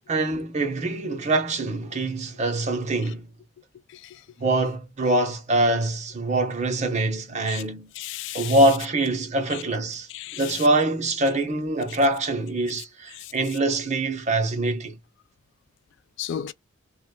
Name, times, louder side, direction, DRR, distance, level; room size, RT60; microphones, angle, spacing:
voice 1, 0.1-3.3 4.4-7.9 8.3-15.0, right 2 dB, 35° right, 0.9 m, -24 dB
voice 2, 3.9-4.2 7.5-7.6 7.9-8.7 9.5-9.6 10.1-10.7 13.1-13.6 16.2-16.5, left 10 dB, 65° left, 0.3 m, -35 dB
3.2 x 2.3 x 2.2 m
head